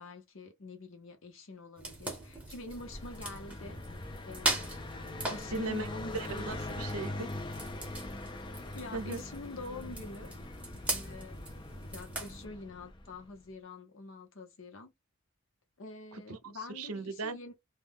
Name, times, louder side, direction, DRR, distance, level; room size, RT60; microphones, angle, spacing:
voice 1, 0.0-3.8 4.2-4.8 5.3-6.3 8.7-10.6 10.9-14.9 15.8-17.5, left 2 dB, 60° left, 0.8 m, -46 dB
sound 1, 1.8-12.5, right 2 dB, 5° right, 0.7 m, -40 dB
Car passing by, 2.6-13.3, left 2 dB, 20° left, 0.4 m, -42 dB
voice 2, 5.5-5.9 6.1-7.3 8.9-9.2 16.1-16.4 16.7-17.4, right 3 dB, 85° right, 0.6 m, -37 dB
2.3 x 2.2 x 3.4 m
head